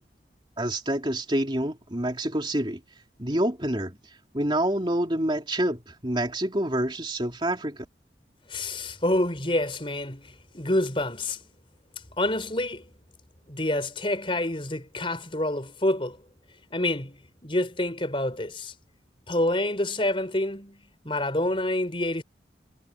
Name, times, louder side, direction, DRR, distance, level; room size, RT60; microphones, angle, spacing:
voice 1, 0.6-2.8 3.2-4.0 4.3-7.8, right 1 dB, 25° right, 3.0 m, -27 dB
voice 2, 8.5-11.4 12.2-12.8 13.5-16.2 16.7-18.7 19.3-22.2, left 1 dB, 30° left, 4.4 m, -27 dB
head